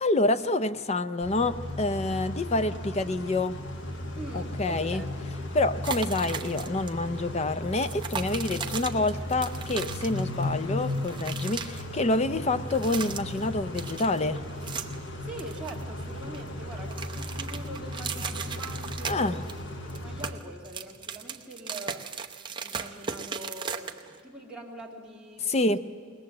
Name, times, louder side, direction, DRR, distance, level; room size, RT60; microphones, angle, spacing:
voice 1, 0.0-3.6 4.3-5.0 5.5-14.4 19.1-19.4 25.5-25.8, left 2 dB, 30° left, 12 dB, 0.6 m, -27 dB
Car / Idling / Accelerating revving vroom, 1.2-20.3, left 1 dB, 55° left, 1.4 m, -36 dB
voice 2, 4.1-5.3 9.1-9.3 15.2-19.4 19.8-22.1 22.6-25.8, right 1 dB, 5° right, -4 dB, 2.2 m, -43 dB
sound 1, 5.8-6.9 7.1-7.3 7.7-10.5 10.8-11.8 12.6-13.5 13.7-15.1 15.4-16.4 16.7-19.6 19.9-24.2, right 6 dB, 20° right, 0.7 m, -37 dB
21.5 x 19.5 x 7.6 m, 2.2 s
head